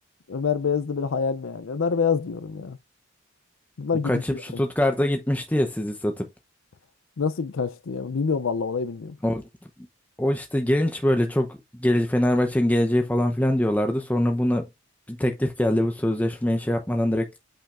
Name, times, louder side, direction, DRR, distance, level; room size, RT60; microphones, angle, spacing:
voice 1, 0.3-2.8 3.8-4.4 7.2-9.2, left 5 dB, 70° left, 0.5 m, -26 dB
voice 2, 4.0-6.3 9.2-9.4 10.2-11.5 11.8-14.7 15.1-17.3, left 1 dB, 10° left, 0.7 m, -23 dB
8.4 x 5.7 x 2.5 m
head